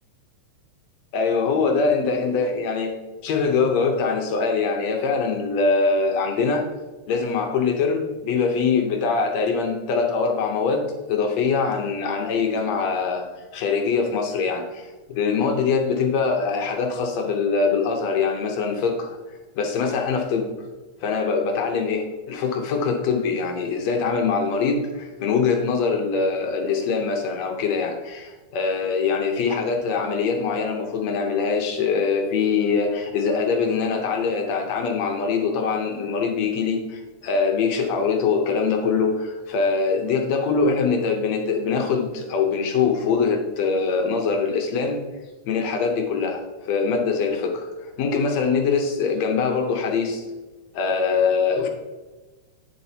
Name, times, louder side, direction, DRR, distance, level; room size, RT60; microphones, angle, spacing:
voice 1, 1.1-3.0 3.2-6.7 7.1-20.5 21.0-45.0 45.5-50.2 50.7-51.7, left 5 dB, 70° left, 3 dB, 1.9 m, -23 dB
9.6 x 7.6 x 2.8 m, 1.2 s
omnidirectional pair, 3.5 m